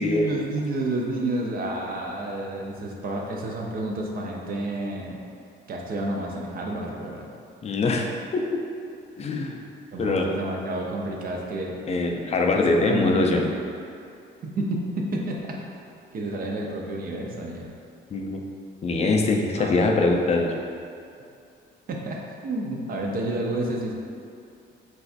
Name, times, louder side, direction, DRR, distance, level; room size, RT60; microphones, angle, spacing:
voice 1, 0.0-5.2 5.7-7.3 9.9-11.8 12.7-13.4 14.4-15.6 16.1-17.7 19.6-19.8 21.9-23.9, right 2 dB, 50° right, 0 dB, 0.5 m, -30 dB
voice 2, 7.6-8.4 9.2-9.6 10.0-10.3 11.9-13.4 18.1-18.4 18.8-20.5, left 3 dB, 35° left, 1 dB, 0.4 m, -23 dB
3.9 x 2.3 x 2.4 m, 2.5 s
cardioid pair, 90°, 20 cm